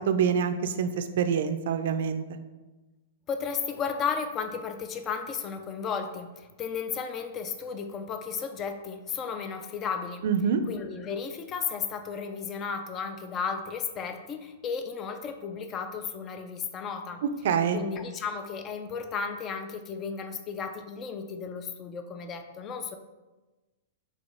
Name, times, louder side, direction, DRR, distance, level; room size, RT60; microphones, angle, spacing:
voice 1, 0.1-2.2 10.2-10.6 17.4-17.8, right 7 dB, 60° right, 10 dB, 0.4 m, -26 dB
voice 2, 3.3-10.3 10.7-17.2 17.7-23.0, left 6 dB, 20° left, 7 dB, 0.3 m, -34 dB
4.1 x 3.1 x 3.4 m, 1.2 s
hypercardioid pair, 155°, 0 cm